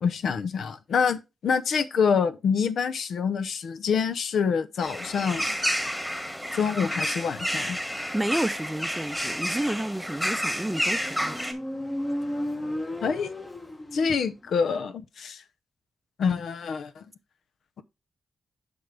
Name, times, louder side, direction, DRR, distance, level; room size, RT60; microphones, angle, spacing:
voice 1, 0.0-5.6 6.5-7.8 13.0-13.3 13.9-15.4 16.2-17.0, left 6 dB, 80° left, 0.6 m, -26 dB
sound 1, 4.8-11.5, equal, 10° left, 1.9 m, -30 dB
voice 2, 8.0-11.4, right 1 dB, 10° right, 0.6 m, -30 dB
Motorcycle, 10.8-14.5, left 1 dB, 25° left, 1.3 m, -34 dB
7.8 x 5.3 x 3.3 m
cardioid pair, 60°, 0 cm